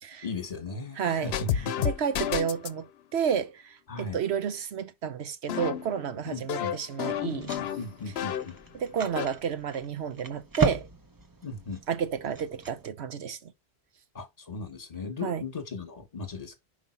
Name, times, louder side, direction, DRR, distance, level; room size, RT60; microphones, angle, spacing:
voice 1, 0.2-1.9 3.9-4.2 6.2-6.8 7.2-8.6 11.4-11.8 14.1-16.6, left 3 dB, 40° left, 1.4 m, -37 dB
voice 2, 1.0-7.5 8.7-10.9 11.9-13.5 15.2-15.4, right 7 dB, 85° right, 1.1 m, -31 dB
sound 1, 1.3-2.8 5.5-8.6 8.9-9.3, left 9 dB, 75° left, 0.8 m, -31 dB
sound 2, 7.0-12.9, right 3 dB, 25° right, 0.6 m, -36 dB
5.4 x 4.9 x 4.3 m
omnidirectional pair, 1.1 m